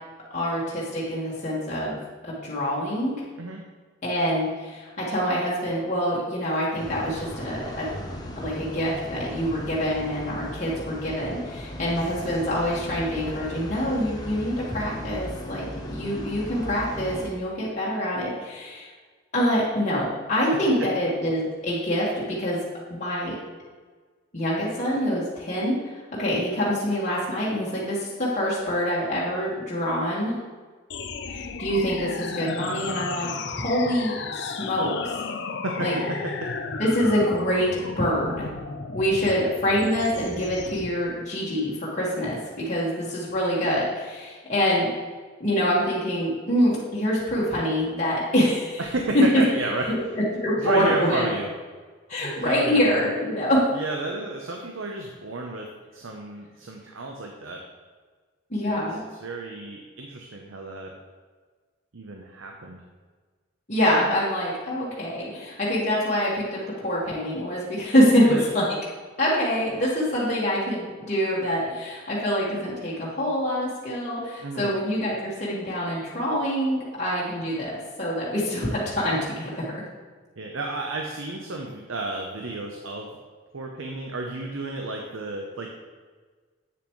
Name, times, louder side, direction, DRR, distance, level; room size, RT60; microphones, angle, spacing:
voice 1, 0.3-3.2 4.0-7.9 8.4-18.9 19.3-22.6 22.9-23.3 24.3-25.8 26.2-30.4 31.3-35.1 35.8-36.0 36.8-38.5 38.9-44.9 45.4-48.8 49.3-49.4 49.9-50.0 50.4-51.3 52.1-53.6 58.5-59.1 63.7-66.6 66.8-68.6 69.2-77.7 78.0-79.7, equal, 35° left, -7 dB, 1.6 m, -25 dB
sound 1, 6.8-17.3, equal, 20° left, 0.8 m, -37 dB
sound 2, 30.9-40.9, left 4 dB, 55° left, 0.5 m, -34 dB
voice 2, 35.6-36.5 48.8-50.1 50.6-51.5 52.2-53.1 53.7-57.6 58.6-60.9 61.9-62.8 68.2-68.4 74.4-74.7 80.4-83.1 83.5-85.7, right 2 dB, 80° right, 1 dB, 0.8 m, -32 dB
8.6 x 6.9 x 3.2 m, 1.4 s
head